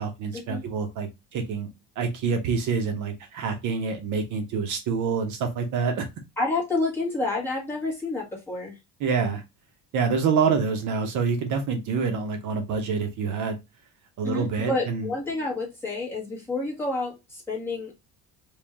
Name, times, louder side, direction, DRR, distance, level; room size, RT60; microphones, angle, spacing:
voice 1, 0.0-1.7 2.0-6.1 9.0-9.4 9.9-13.6 14.2-15.1, right 5 dB, 55° right, 5 dB, 0.7 m, -26 dB
voice 2, 6.4-8.8 14.2-17.9, left 2 dB, 5° left, -4 dB, 1.2 m, -29 dB
3.4 x 2.6 x 3.3 m, 0.23 s
cardioid pair, 175°, 38 cm